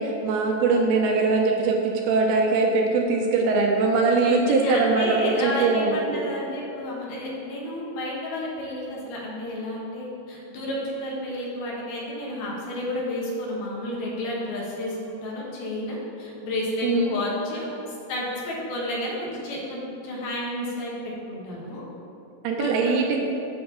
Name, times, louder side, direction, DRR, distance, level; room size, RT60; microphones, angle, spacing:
voice 1, 0.0-6.2 16.8-17.1 22.4-23.2, right 3 dB, 80° right, 1 dB, 2.6 m, -22 dB
voice 2, 4.1-17.7 18.1-21.8 22.6-22.9, left 1 dB, 70° left, -4 dB, 3.2 m, -31 dB
8.5 x 4.4 x 7.0 m, 2.7 s
omnidirectional pair, 4.7 m